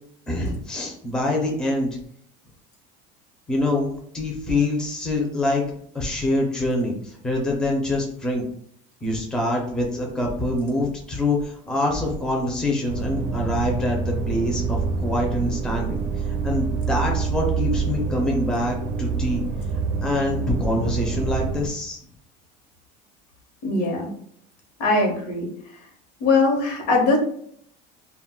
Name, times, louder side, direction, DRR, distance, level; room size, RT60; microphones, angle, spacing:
voice 1, 0.3-2.0 3.5-5.6 5.9-8.4 9.0-16.0 16.4-19.4 20.0-22.0, left 1 dB, 5° left, 0 dB, 0.4 m, -25 dB
sound 1, 12.9-21.7, right 5 dB, 60° right, 0.5 m, -27 dB
voice 2, 23.6-24.1 24.8-25.5 26.2-27.2, left 3 dB, 80° left, 1 dB, 1.0 m, -21 dB
2.2 x 2.1 x 3.5 m, 0.65 s
cardioid pair, 155°, 20 cm